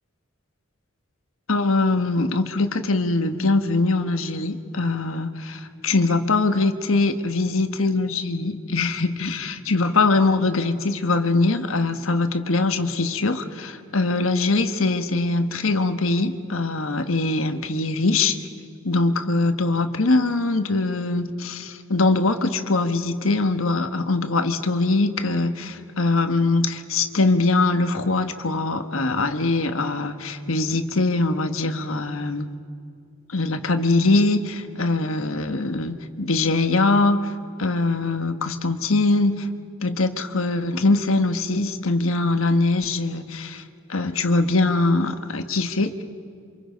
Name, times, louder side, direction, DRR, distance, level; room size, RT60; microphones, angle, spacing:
voice 1, 1.5-18.4 18.8-32.5 33.3-37.3 37.6-39.5 39.8-43.6 43.9-46.0, left 3 dB, 70° left, 7 dB, 1.4 m, -22 dB
28.5 x 26.0 x 5.2 m, 2.4 s
head